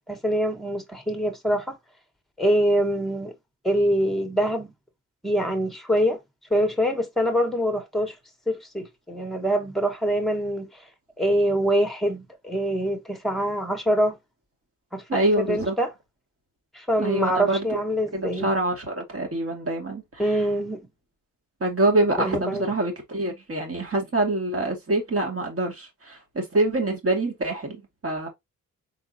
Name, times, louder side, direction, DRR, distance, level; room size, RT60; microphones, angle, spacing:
voice 1, 0.1-1.8 2.4-3.3 3.6-4.7 5.2-6.2 6.5-8.1 8.5-10.7 11.2-14.2 14.9-15.9 16.7-18.5 20.2-20.8 22.2-22.7, equal, ahead, 1.5 m, -24 dB
voice 2, 15.1-15.8 17.0-17.7 18.1-20.4 21.6-28.3, right 2 dB, 45° right, 2.4 m, -25 dB
4.3 x 3.8 x 2.8 m
cardioid pair, 65°, 32 cm